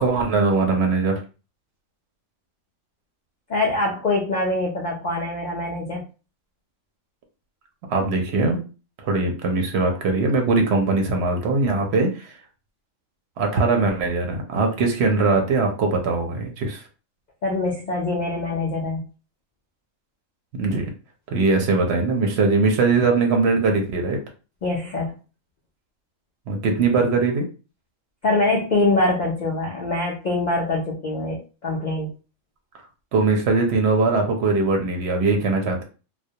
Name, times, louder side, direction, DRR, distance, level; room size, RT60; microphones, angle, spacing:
voice 1, 0.0-1.2 7.9-8.6 9.0-12.3 13.4-16.8 20.5-20.9 21.3-24.2 26.5-27.5 33.1-35.8, right 3 dB, 65° right, 3 dB, 0.7 m, -21 dB
voice 2, 3.5-6.0 17.4-19.0 24.6-25.1 28.2-32.1, left 2 dB, 70° left, -1 dB, 0.4 m, -24 dB
2.2 x 2.1 x 2.6 m, 0.34 s
omnidirectional pair, 1.3 m